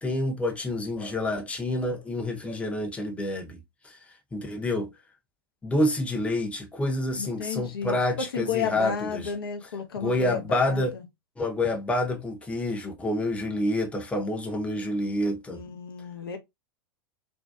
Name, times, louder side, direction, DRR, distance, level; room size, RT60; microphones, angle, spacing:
voice 1, 0.0-3.6 3.8-4.0 4.3-4.9 5.6-9.3 10.0-10.9 11.4-15.6, left 1 dB, 10° left, 0.6 m, -28 dB
voice 2, 7.1-8.0 8.3-11.0 15.5-16.4, left 7 dB, 75° left, 0.6 m, -32 dB
2.5 x 2.2 x 2.2 m
figure-of-eight pair, 90°, 12 cm